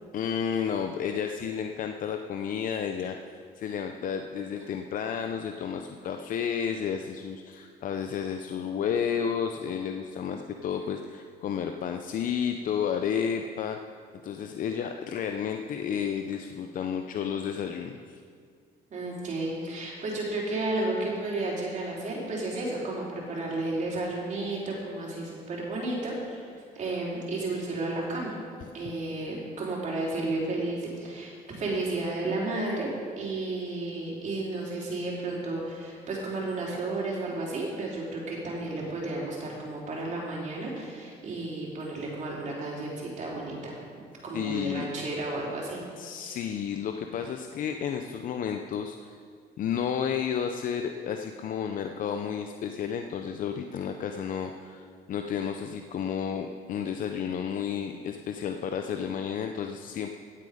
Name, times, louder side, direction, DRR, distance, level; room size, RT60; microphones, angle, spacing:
voice 1, 0.1-13.8 14.2-18.2 44.3-44.9 46.0-49.2 49.6-60.1, left 7 dB, 55° left, 6 dB, 0.6 m, -31 dB
voice 2, 18.9-28.4 28.7-43.8 44.2-45.8 47.9-48.0, right 2 dB, 45° right, -3 dB, 3.6 m, -32 dB
16.0 x 7.9 x 5.1 m, 2.1 s
cardioid pair, 110°, 17 cm